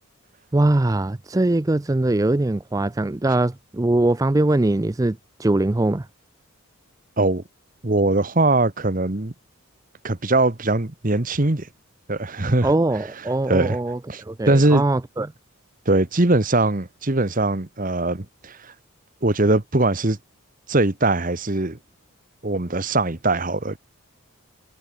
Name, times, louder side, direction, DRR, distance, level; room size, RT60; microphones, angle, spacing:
voice 1, 0.5-6.1 12.6-15.3, right 2 dB, 15° right, 0.4 m, -21 dB
voice 2, 7.8-9.3 10.0-11.7 12.1-12.7 13.5-13.8 14.1-14.9 15.8-18.7 19.2-20.2 20.7-21.8 22.4-23.8, right 2 dB, 40° right, 1.3 m, -21 dB
head